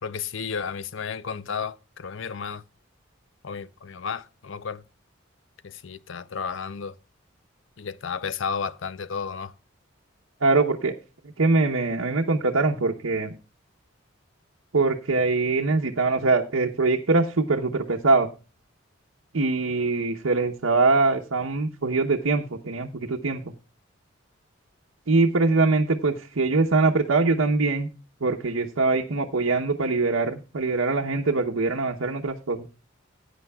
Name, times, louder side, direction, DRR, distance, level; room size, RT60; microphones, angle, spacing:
voice 1, 0.0-2.6 3.4-4.8 5.6-7.0 7.8-9.5, left 6 dB, 65° left, 0.5 m, -32 dB
voice 2, 10.4-10.9 11.4-13.3 14.7-18.3 19.3-23.4 25.1-27.9 28.2-32.7, right 3 dB, 85° right, 0.9 m, -23 dB
16.5 x 9.3 x 2.3 m
head